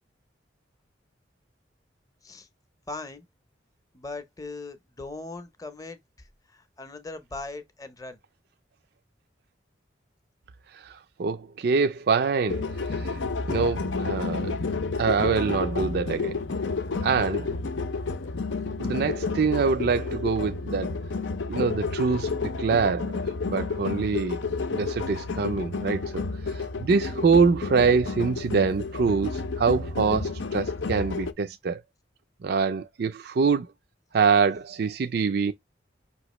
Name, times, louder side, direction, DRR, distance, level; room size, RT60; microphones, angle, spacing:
voice 1, 2.9-3.2 3.9-8.2, left 3 dB, 20° left, 0.7 m, -39 dB
voice 2, 10.7-13.2 13.5-14.6 15.0-16.4 17.0-17.5 18.8-20.9 21.5-23.2 23.5-24.4 24.7-26.2 26.5-31.8 32.4-33.7 34.1-35.5, right 5 dB, 55° right, 0.4 m, -25 dB
sound 1, 12.5-31.3, left 4 dB, 80° left, 0.6 m, -30 dB
5.6 x 3.0 x 3.0 m
head